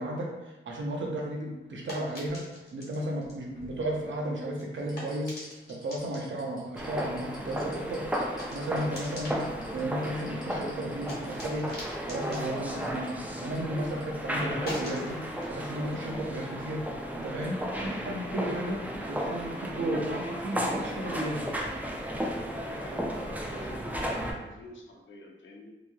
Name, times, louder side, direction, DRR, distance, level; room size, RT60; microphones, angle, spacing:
voice 1, 0.0-2.4 2.7-5.3 5.7-8.0 8.5-11.7 12.1-15.2 15.5-16.8 17.1-18.8 19.1-21.5, right 1 dB, 70° right, -1 dB, 0.6 m, -34 dB
sound 1, 1.0-13.8 14.1-17.3, left 1 dB, 50° left, 1.2 m, -46 dB
sound 2, 3.2-4.3 4.8-14.0 14.4-14.5, equal, 20° left, 0.9 m, -53 dB
sound 3, 6.8-24.3, equal, 10° right, 0.3 m, -34 dB
voice 2, 22.5-25.7, left 1 dB, 70° left, -1 dB, 0.6 m, -47 dB
2.9 x 2.6 x 2.3 m, 1.1 s
wide cardioid pair, 130°, 20 cm